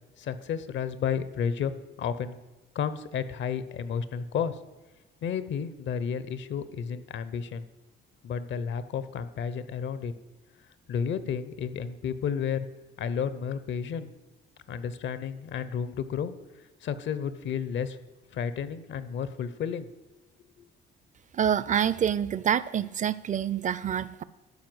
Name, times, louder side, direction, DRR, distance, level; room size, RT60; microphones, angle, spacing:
voice 1, 0.2-1.7 2.0-2.4 2.7-4.6 5.2-7.6 8.2-10.1 10.9-12.7 13.0-14.1 14.7-16.3 16.8-18.0 18.3-19.9 20.6-20.7, left 7 dB, 70° left, 14 dB, 0.8 m, -32 dB
voice 2, 21.3-24.2, right 9 dB, 40° right, 17 dB, 0.5 m, -27 dB
12.5 x 4.6 x 7.8 m, 1.1 s
cardioid pair, 90°, 20 cm